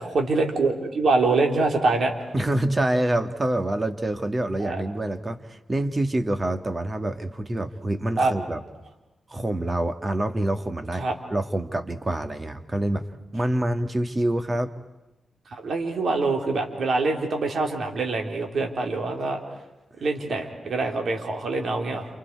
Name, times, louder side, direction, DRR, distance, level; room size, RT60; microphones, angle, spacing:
voice 1, 0.0-2.3 4.6-4.8 8.2-8.3 11.0-11.1 15.5-19.4 20.0-22.1, right 3 dB, 70° right, 3 dB, 3.6 m, -24 dB
voice 2, 2.3-8.6 9.3-13.1 13.3-14.7, right 1 dB, 30° right, 8 dB, 1.8 m, -26 dB
29.0 x 29.0 x 4.8 m, 1.0 s
cardioid pair, 80°, 0 cm